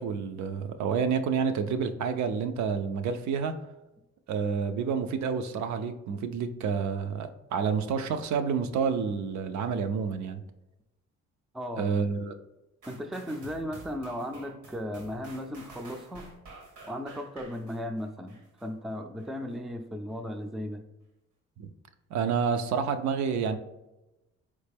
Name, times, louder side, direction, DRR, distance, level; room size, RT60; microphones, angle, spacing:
voice 1, 0.0-3.5 4.3-10.4 11.8-12.3 21.6-21.7 22.1-23.6, right 6 dB, 70° right, 8 dB, 0.5 m, -29 dB
voice 2, 11.5-11.9 12.9-16.3 16.9-20.8, equal, ahead, 5 dB, 0.3 m, -36 dB
sound 1, 12.8-18.7 19.2-19.3, right 3 dB, 90° right, 1.4 m, -49 dB
4.0 x 3.2 x 3.4 m, 0.96 s
cardioid pair, 90°, 30 cm